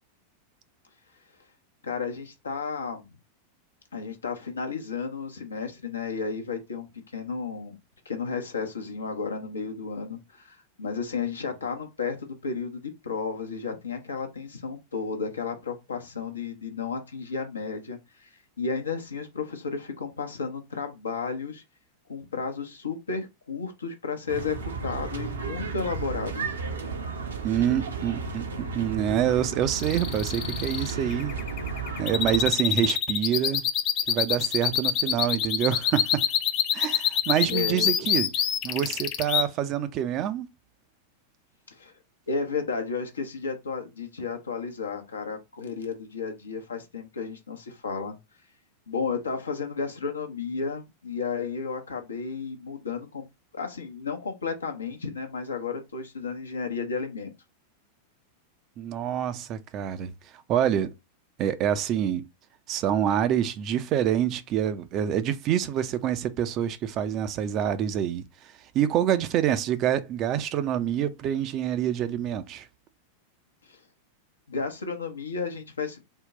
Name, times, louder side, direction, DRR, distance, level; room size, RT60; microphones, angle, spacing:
voice 1, 1.8-3.1 3.9-6.9 7.1-7.8 8.1-18.3 18.6-21.6 22.1-24.6 24.8-26.5 37.5-37.9 41.8-41.9 42.3-48.2 48.9-53.3 53.5-57.3 73.7-73.8 74.5-76.0, left 5 dB, 75° left, 0.8 m, -33 dB
sound 1, 24.3-32.5, right 4 dB, 70° right, 0.7 m, -33 dB
voice 2, 27.4-31.3 32.0-33.7 34.1-36.2 36.7-38.3 38.6-40.5 58.8-60.1 60.5-60.9 61.4-62.3 62.7-72.7, right 10 dB, 35° right, 0.4 m, -26 dB
sound 2, 29.7-39.4, left 9 dB, 40° left, 0.5 m, -26 dB
3.7 x 2.2 x 3.8 m
figure-of-eight pair, 90°, 0 cm